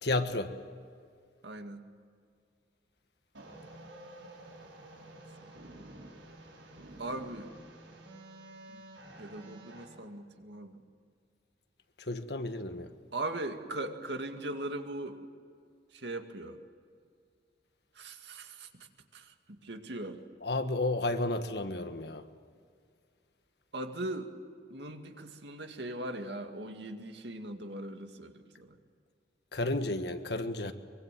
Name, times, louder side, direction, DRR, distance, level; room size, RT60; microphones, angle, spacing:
voice 1, 0.0-0.5 12.0-12.9 20.4-22.2 29.5-30.7, left 2 dB, 65° left, 8 dB, 1.5 m, -32 dB
voice 2, 1.4-1.9 5.0-5.1 5.4-5.9 7.0-7.5 8.7-8.8 9.2-10.8 13.1-15.2 15.9-16.6 18.0-18.9 19.1-20.2 23.7-24.3 24.7-28.8, right 1 dB, 70° right, 5 dB, 2.2 m, -40 dB
sound 1, 3.3-9.8, right 1 dB, 90° right, 5.8 m, -50 dB
24.0 x 24.0 x 7.6 m, 2.2 s
head